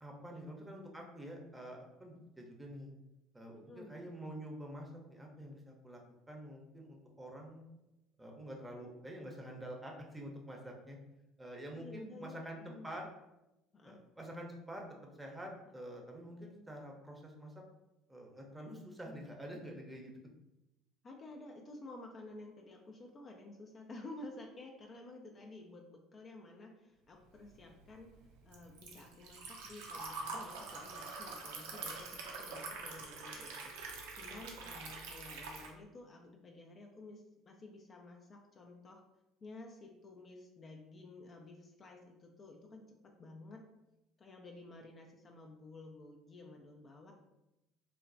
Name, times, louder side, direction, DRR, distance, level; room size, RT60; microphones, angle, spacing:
voice 1, 0.0-2.9 3.3-6.0 6.3-7.7 8.2-11.0 11.4-13.0 13.8-14.8 15.2-17.5 18.1-20.2, equal, 10° right, 0 dB, 0.7 m, -47 dB
voice 2, 3.5-3.9 11.7-13.1 13.7-14.0 16.4-16.5 21.0-28.1 28.4-39.0 39.4-42.8 43.2-43.6 44.2-47.1, left 2 dB, 40° left, 1 dB, 0.4 m, -52 dB
Liquid, 27.4-35.7, right 3 dB, 70° right, 0.4 m, -45 dB
3.0 x 2.1 x 2.5 m, 0.92 s
hypercardioid pair, 60°, 0 cm